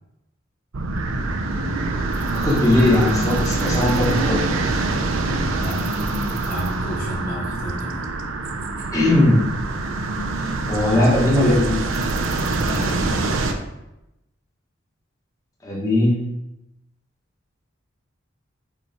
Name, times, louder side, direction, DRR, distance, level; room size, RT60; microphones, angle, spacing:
sound 1, 0.7-13.5, right 2 dB, 90° right, 0.6 m, -24 dB
voice 1, 2.2-4.4 8.9-9.5 10.3-11.8 15.6-16.2, left 1 dB, 15° left, -4 dB, 1.3 m, -19 dB
voice 2, 5.5-8.1 12.6-13.2, equal, 45° left, -3 dB, 1.1 m, -32 dB
7.0 x 3.1 x 4.4 m, 0.90 s
head